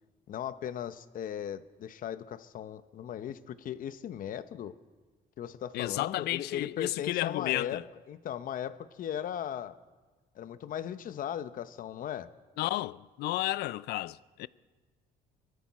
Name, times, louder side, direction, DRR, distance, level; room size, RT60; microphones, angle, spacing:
voice 1, 0.3-4.7 5.4-9.8 10.4-12.3, left 10 dB, 55° left, 0.8 m, -37 dB
voice 2, 5.7-7.8 12.6-14.5, left 16 dB, 75° left, 0.4 m, -32 dB
23.5 x 13.0 x 4.2 m
cardioid pair, 110°, 17 cm